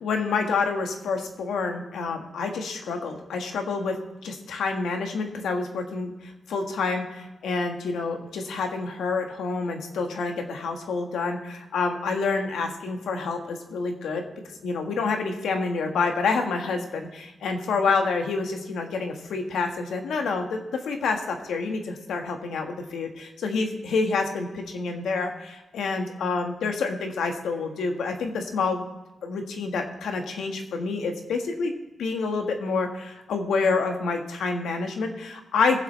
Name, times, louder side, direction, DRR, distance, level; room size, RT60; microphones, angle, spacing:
voice 1, 0.0-3.9 4.2-14.2 14.6-20.6 20.9-28.8 29.2-31.7 32.0-35.8, left 4 dB, 90° left, 4 dB, 1.6 m, -28 dB
21.5 x 7.7 x 3.3 m, 1.1 s
cardioid pair, 100°, 0 cm